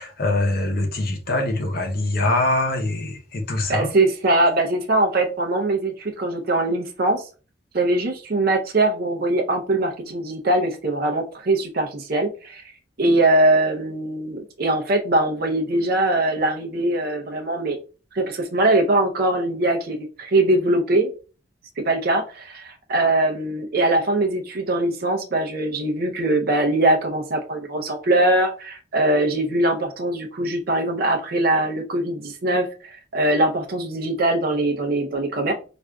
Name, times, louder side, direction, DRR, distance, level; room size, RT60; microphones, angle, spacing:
voice 1, 0.0-3.9, left 2 dB, 55° left, 0.7 m, -23 dB
voice 2, 3.7-7.3 7.7-12.7 13.0-17.8 18.1-21.1 21.8-35.5, right 2 dB, 55° right, 0.6 m, -22 dB
4.7 x 2.5 x 2.2 m
head